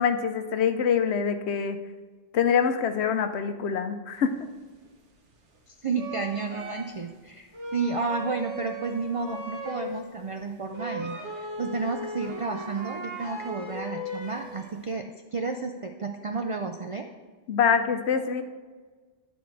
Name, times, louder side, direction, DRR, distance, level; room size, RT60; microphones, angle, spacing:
voice 1, 0.0-1.8 2.3-4.5 17.5-18.4, left 7 dB, 75° left, 9 dB, 0.9 m, -25 dB
sound 1, 4.9-5.0 5.9-7.1 7.5-10.0 10.4-10.5 10.7-14.8, equal, 80° right, 1.4 m, -37 dB
voice 2, 5.7-15.1 15.3-17.1, right 4 dB, 60° right, 5 dB, 0.3 m, -31 dB
10.5 x 4.2 x 4.6 m, 1.4 s
omnidirectional pair, 1.2 m